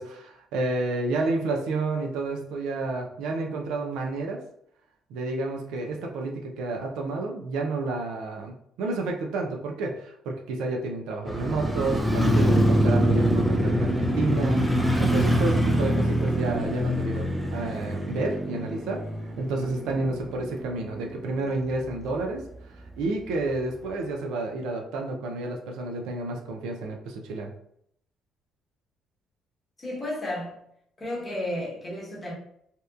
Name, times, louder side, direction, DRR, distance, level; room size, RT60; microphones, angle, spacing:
voice 1, 0.0-4.4 5.1-19.0 19.4-27.5, right 2 dB, 85° right, 0.4 m, -30 dB
Motorcycle, 11.2-21.4 21.7-21.8, equal, ahead, 0.3 m, -24 dB
voice 2, 29.8-30.6 31.0-32.3, left 1 dB, 25° left, 1.0 m, -32 dB
2.8 x 2.1 x 2.3 m
cardioid pair, 130°, 0 cm